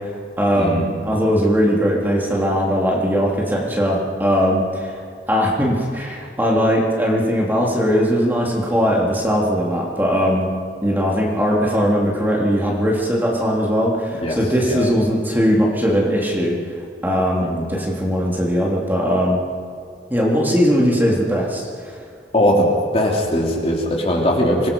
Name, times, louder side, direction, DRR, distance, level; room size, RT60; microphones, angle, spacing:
voice 1, 0.0-5.0 5.3-10.5 10.8-16.6 17.0-19.4 20.1-22.0, equal, 10° right, -3 dB, 3.0 m, -19 dB
voice 2, 0.5-1.0 14.2-14.4 14.6-14.9 17.4-17.7 22.3-22.7 22.9-24.7, equal, 35° left, -1 dB, 3.1 m, -20 dB
25.5 x 19.0 x 5.4 m, 2.2 s
head